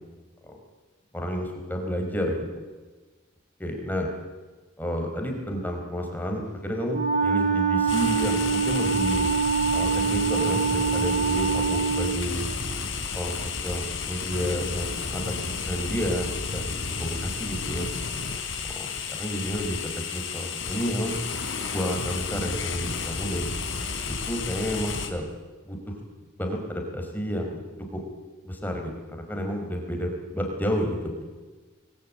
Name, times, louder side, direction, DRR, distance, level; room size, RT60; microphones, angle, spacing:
voice 1, 1.1-2.4 3.6-4.1 4.8-9.3 9.7-12.5 13.1-17.9 18.6-18.9 19.2-19.8 20.1-21.1 21.7-23.5 24.1-25.3 25.7-25.9 26.4-27.6 27.9-28.0 28.4-31.2, equal, 10° left, 2 dB, 4.8 m, -30 dB
Wind instrument woodwind instrument, 6.9-12.3, right 5 dB, 35° right, 4.4 m, -24 dB
sound 1, 7.9-25.1, left 5 dB, 80° left, 3.9 m, -32 dB
28.5 x 21.0 x 8.9 m, 1.3 s
head